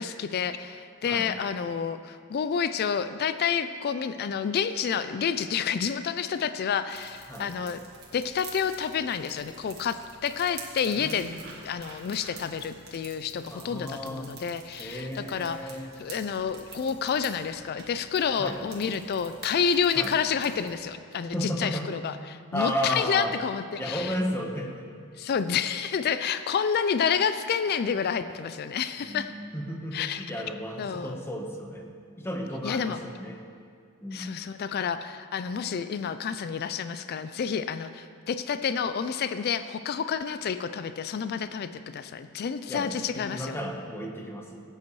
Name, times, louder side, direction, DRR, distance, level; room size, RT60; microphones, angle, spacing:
voice 1, 0.0-7.8 8.1-11.3 11.6-15.7 16.0-24.2 25.2-29.3 29.9-30.3 30.8-31.2 32.6-33.0 34.1-43.6, left 7 dB, 45° left, 11 dB, 0.3 m, -29 dB
sound 1, 6.9-20.7, right 4 dB, 50° right, 1.8 m, -48 dB
voice 2, 11.0-11.5 13.5-14.3 14.8-15.9 18.4-18.6 19.9-20.1 21.3-21.9 22.5-23.3 23.8-24.9 29.0-31.9 32.2-33.4 34.0-34.3 42.7-44.6, equal, 10° left, 1 dB, 1.0 m, -33 dB
16.5 x 8.7 x 3.1 m, 2.2 s
head